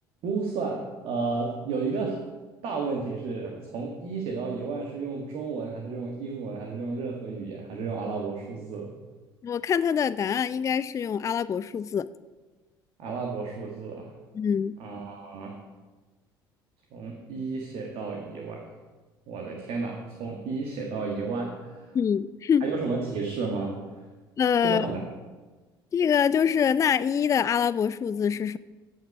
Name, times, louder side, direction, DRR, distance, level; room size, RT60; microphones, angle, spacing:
voice 1, 0.2-2.3 2.6-8.9 13.0-14.1 14.8-15.6 16.9-18.6 19.3-21.9 22.6-24.0 24.6-25.0, right 4 dB, 55° right, 1 dB, 1.6 m, -32 dB
voice 2, 9.4-12.1 14.3-14.8 21.9-22.6 24.4-24.9 25.9-28.6, left 7 dB, 25° left, 16 dB, 0.4 m, -24 dB
15.5 x 5.8 x 5.3 m, 1.3 s
figure-of-eight pair, 55°, 12 cm